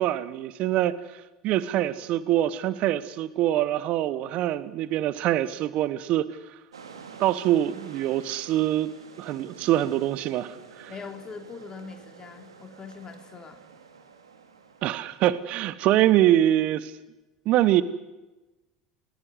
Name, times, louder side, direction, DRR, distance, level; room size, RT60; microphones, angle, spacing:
voice 1, 0.0-6.6 7.2-8.9 9.2-10.9 14.8-16.9 17.4-17.8, right 13 dB, 55° right, 15 dB, 1.2 m, -24 dB
sound 1, 6.7-15.7, right 5 dB, 90° right, 2.7 m, -48 dB
voice 2, 10.9-13.6, left 5 dB, 30° left, 5 dB, 2.9 m, -42 dB
29.0 x 20.0 x 8.1 m, 1.1 s
hypercardioid pair, 75°, 3 cm